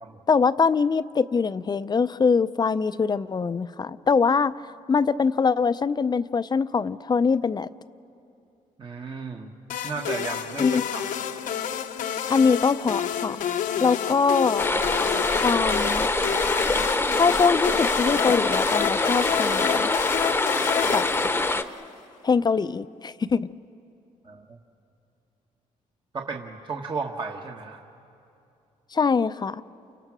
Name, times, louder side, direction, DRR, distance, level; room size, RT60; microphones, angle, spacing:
voice 1, 0.3-4.6 4.9-7.7 10.6-10.9 12.3-13.4 13.8-14.6 15.4-16.1 17.1-19.9 20.9-21.1 22.2-23.5 28.9-29.6, left 5 dB, 30° left, 14 dB, 0.6 m, -23 dB
voice 2, 8.8-9.5 9.8-11.0 24.2-24.6 26.1-27.8, right 4 dB, 35° right, 2 dB, 1.3 m, -34 dB
sound 1, 9.7-21.9, left 9 dB, 80° left, 1.0 m, -30 dB
sound 2, 14.6-21.6, left 2 dB, 15° left, 0.9 m, -24 dB
29.0 x 24.5 x 6.2 m, 2.7 s
cardioid pair, 85°, 13 cm